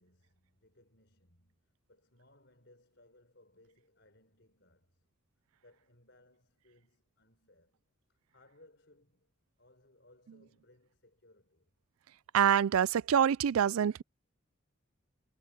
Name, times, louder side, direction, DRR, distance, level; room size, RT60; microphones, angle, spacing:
voice 1, 0.0-5.1 5.6-7.8 8.1-11.8, left 1 dB, 55° left, 5.6 m, -65 dB
voice 2, 12.3-14.0, right 8 dB, 85° right, 0.4 m, -26 dB
head